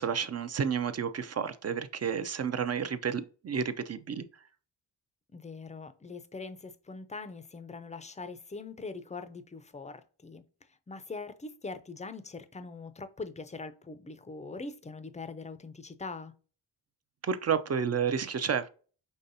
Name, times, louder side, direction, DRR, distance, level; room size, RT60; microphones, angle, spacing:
voice 1, 0.0-4.2 17.2-18.7, right 7 dB, 35° right, 0.5 m, -31 dB
voice 2, 5.3-10.4 10.7-16.3, left 3 dB, 15° left, 0.5 m, -42 dB
5.5 x 3.3 x 2.6 m
cardioid pair, 85°, 44 cm